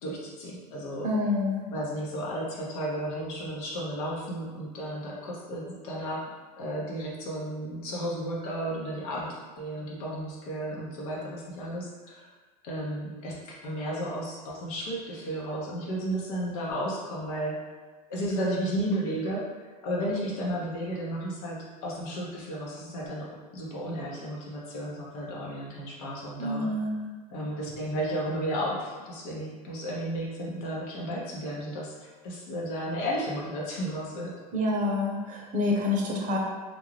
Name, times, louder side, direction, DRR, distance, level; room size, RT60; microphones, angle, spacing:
voice 1, 0.0-1.1 1.7-6.3 6.6-9.3 9.6-12.3 12.6-17.6 18.1-19.5 19.8-26.7 27.3-34.3, equal, 70° left, -3 dB, 0.8 m, -33 dB
voice 2, 1.0-1.6 26.4-27.1 34.5-36.4, left 2 dB, 40° right, -1 dB, 0.7 m, -27 dB
2.5 x 2.3 x 3.2 m, 1.3 s
hypercardioid pair, 95°, 20 cm